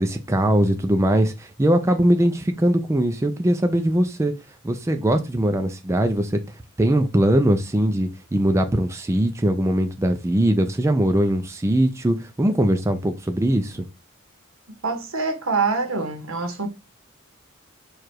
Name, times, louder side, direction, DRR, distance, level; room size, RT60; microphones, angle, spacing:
voice 1, 0.0-4.3 4.6-6.4 6.8-13.8, right 1 dB, 15° right, 0.4 m, -21 dB
voice 2, 14.8-16.7, right 4 dB, 80° right, 1.2 m, -25 dB
4.8 x 2.4 x 4.4 m
head